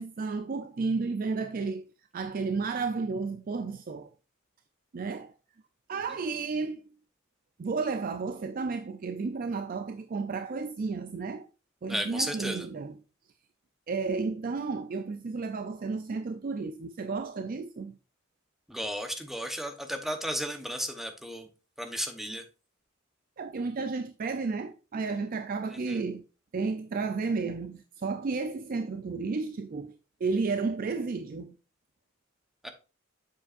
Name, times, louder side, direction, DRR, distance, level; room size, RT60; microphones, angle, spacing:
voice 1, 0.0-1.9 2.1-4.1 4.9-5.3 5.9-6.9 7.6-11.5 11.8-13.0 13.9-18.0 23.4-26.2 26.5-29.9 30.2-31.5, right 4 dB, 45° right, 0.4 m, -32 dB
voice 2, 11.9-12.7 18.7-21.5 21.8-22.4 25.9-26.0 32.6-32.7, equal, ahead, 0.9 m, -34 dB
7.5 x 7.1 x 2.5 m
head